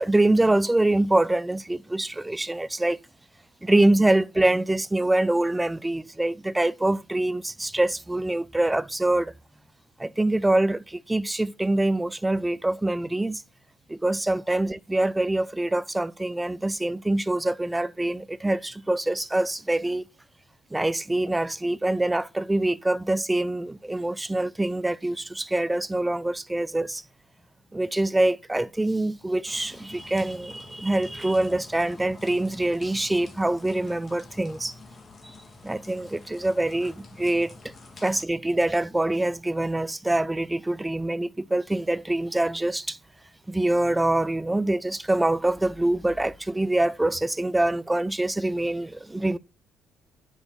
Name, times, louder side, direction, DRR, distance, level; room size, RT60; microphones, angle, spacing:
voice 1, 0.0-3.0 3.6-9.3 10.0-13.4 13.9-20.0 20.7-27.0 27.7-34.7 35.2-35.3 35.6-37.6 38.0-43.0 43.5-49.4, right 1 dB, 10° right, 0.4 m, -25 dB
sound 1, 29.5-38.2, left 3 dB, 30° left, 1.7 m, -48 dB
9.8 x 6.2 x 5.3 m
cardioid pair, 120°, 0 cm